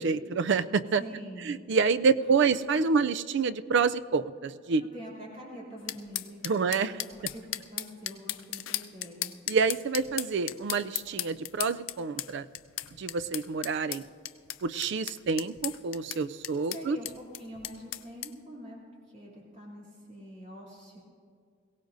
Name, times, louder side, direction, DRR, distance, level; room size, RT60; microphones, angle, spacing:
voice 1, 0.0-1.0 1.5-4.8 6.4-6.9 9.5-12.5 13.0-14.0 14.6-17.0, right 5 dB, 65° right, 14 dB, 0.4 m, -27 dB
voice 2, 1.0-1.5 2.2-2.5 2.9-3.0 4.8-9.4 16.7-18.8 19.1-21.0, equal, 40° right, -4 dB, 3.0 m, -45 dB
sound 1, 5.9-18.3, left 14 dB, 85° left, 0.5 m, -37 dB
22.0 x 17.0 x 2.7 m, 2.2 s
head